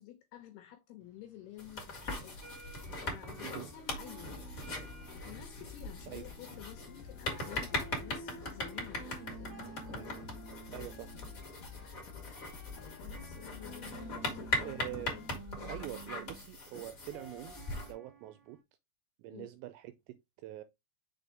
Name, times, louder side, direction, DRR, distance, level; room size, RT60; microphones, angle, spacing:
voice 1, 0.0-2.4 3.0-4.6 5.1-9.7 13.0-15.3 19.3-19.5, left 12 dB, 80° left, 2.4 m, -51 dB
sound 1, 1.1-18.6, right 3 dB, 30° right, 1.2 m, -52 dB
sound 2, 1.6-17.9, left 2 dB, 30° left, 1.5 m, -40 dB
sound 3, 4.1-15.3, left 7 dB, 65° left, 2.4 m, -51 dB
voice 2, 10.7-11.1 14.6-15.2 15.6-17.6 17.8-18.6 19.2-20.6, right 15 dB, 85° right, 2.5 m, -45 dB
6.7 x 4.1 x 3.5 m
omnidirectional pair, 5.5 m